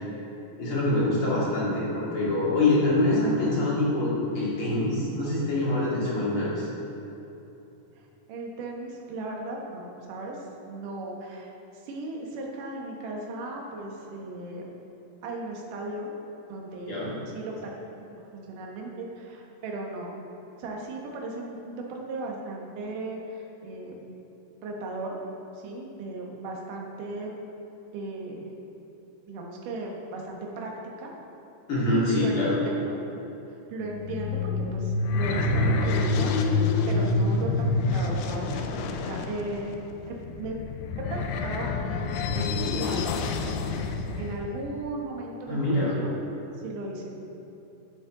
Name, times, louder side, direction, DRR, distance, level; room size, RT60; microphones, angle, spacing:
voice 1, 0.6-6.7 16.8-17.1 31.7-32.5 45.5-46.0, left 2 dB, 40° left, -8 dB, 2.9 m, -25 dB
voice 2, 8.3-11.5 11.8-14.6 15.2-16.1 16.5-17.0 17.3-17.7 18.2-20.2 20.6-24.2 24.6-25.1 25.6-27.3 27.9-28.5 29.3-30.7 31.0-31.1 31.8-33.0 33.7-36.3 36.9-37.7 37.9-38.7 39.0-40.6 41.1-41.7 42.3-43.5 44.2-46.1 46.6-47.2, right 2 dB, 65° right, -1 dB, 2.7 m, -36 dB
sound 1, 33.8-44.3, left 3 dB, 80° left, 1.8 m, -27 dB
11.5 x 9.4 x 3.9 m, 3.0 s
omnidirectional pair, 4.3 m